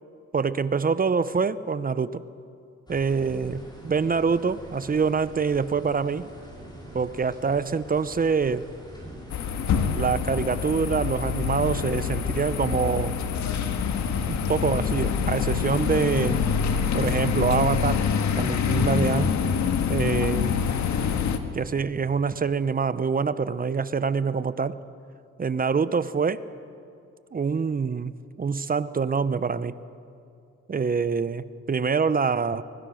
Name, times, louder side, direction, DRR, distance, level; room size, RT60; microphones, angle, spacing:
voice 1, 0.3-2.2 2.9-6.3 6.9-8.6 9.9-13.2 14.3-16.4 16.9-18.0 18.3-19.3 19.9-20.6 21.5-24.8 25.4-26.4 27.3-29.8 30.7-32.6, right 5 dB, 30° right, 15 dB, 0.8 m, -25 dB
sound 1, 2.9-16.9, equal, 15° left, 5.7 m, -45 dB
sound 2, 9.3-21.4, left 6 dB, 65° left, 1.7 m, -25 dB
24.0 x 22.0 x 6.5 m, 2.5 s
cardioid pair, 90°, 30 cm